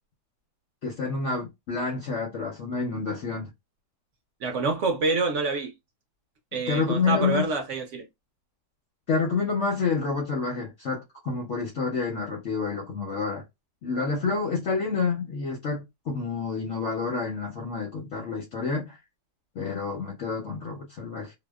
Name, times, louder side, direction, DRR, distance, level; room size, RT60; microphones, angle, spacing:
voice 1, 0.8-3.5 6.7-7.5 9.1-13.4 13.8-19.0 19.6-21.3, left 4 dB, 60° left, 0.8 m, -28 dB
voice 2, 4.4-5.7 6.5-8.1, right 3 dB, 60° right, 0.8 m, -27 dB
2.7 x 2.1 x 2.2 m
omnidirectional pair, 1.8 m